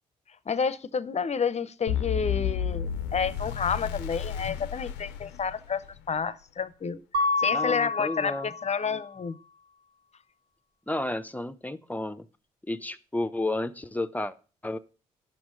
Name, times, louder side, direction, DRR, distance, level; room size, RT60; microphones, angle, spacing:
voice 1, 0.5-9.4, left 6 dB, 40° left, 0.8 m, -30 dB
sound 1, 1.9-6.0, left 9 dB, 85° left, 0.6 m, -32 dB
Mallet percussion, 7.1-9.0, left 3 dB, 70° right, 1.2 m, -28 dB
voice 2, 7.5-8.5 10.9-12.3 12.7-14.3 14.6-14.8, left 2 dB, 10° left, 0.8 m, -32 dB
10.5 x 6.2 x 5.3 m
hypercardioid pair, 45°, 18 cm